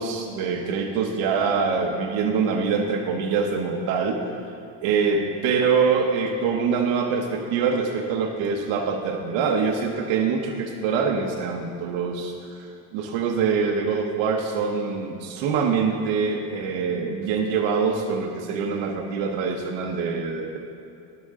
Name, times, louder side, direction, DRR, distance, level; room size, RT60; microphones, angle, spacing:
voice 1, 0.0-4.2 4.8-12.3 12.9-20.6, right 5 dB, 80° right, 2 dB, 1.0 m, -24 dB
17.5 x 6.1 x 3.6 m, 2.7 s
cardioid pair, 140°, 44 cm